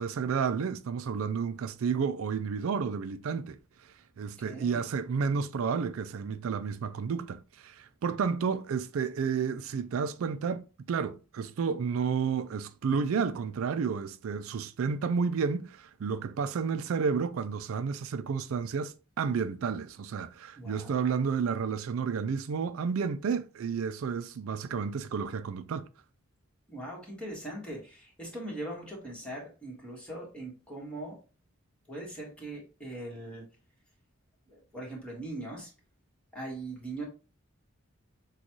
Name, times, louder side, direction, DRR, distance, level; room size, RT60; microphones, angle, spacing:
voice 1, 0.0-25.9, right 6 dB, 80° right, 0.4 m, -31 dB
voice 2, 4.4-4.9 20.6-20.9 26.7-31.2 31.9-33.4 34.5-35.7 36.3-37.0, right 1 dB, 5° left, 1.7 m, -40 dB
6.3 x 2.4 x 3.0 m
head